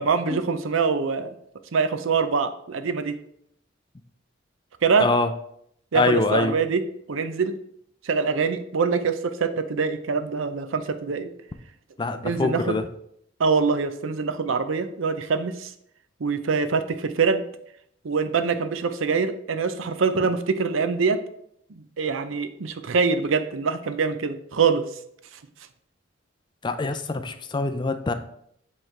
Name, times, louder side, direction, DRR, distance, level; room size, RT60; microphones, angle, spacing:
voice 1, 0.0-1.3 1.7-3.2 4.8-5.1 5.9-6.8 7.1-7.6 8.0-11.3 12.2-12.7 13.4-15.7 16.2-17.4 18.0-21.2 22.0-24.9, right 5 dB, 80° right, 10 dB, 0.6 m, -24 dB
voice 2, 5.0-5.3 5.9-6.5 12.0-12.9 26.6-28.1, left 3 dB, 25° left, 9 dB, 0.4 m, -24 dB
7.7 x 3.2 x 4.5 m, 0.71 s
head